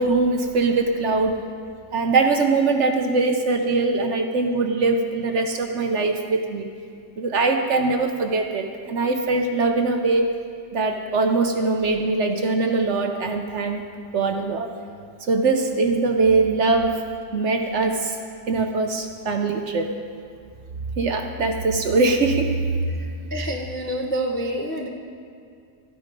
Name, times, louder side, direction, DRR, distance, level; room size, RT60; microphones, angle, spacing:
voice 1, 0.0-1.4 1.9-6.7 7.2-10.3 10.7-13.8 14.1-14.7 15.3-17.0 17.3-18.2 18.5-19.9 21.0-23.0, right 3 dB, 55° right, 5 dB, 0.9 m, -22 dB
voice 2, 23.3-24.9, right 1 dB, 15° left, 1 dB, 0.4 m, -27 dB
13.5 x 9.0 x 5.2 m, 2.3 s
omnidirectional pair, 1.7 m